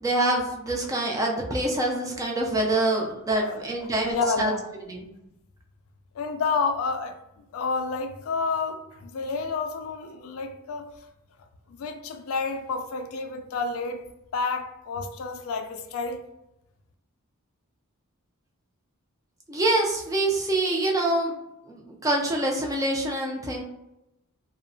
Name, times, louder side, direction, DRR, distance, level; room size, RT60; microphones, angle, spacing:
voice 1, 0.0-4.5 4.9-5.1 19.5-21.4 21.7-23.6, right 1 dB, 15° right, 0.3 m, -25 dB
voice 2, 3.3-4.6 6.1-7.2 7.5-10.9 11.7-14.0 14.3-16.2, left 4 dB, 65° left, 0.3 m, -30 dB
2.7 x 2.0 x 2.6 m
head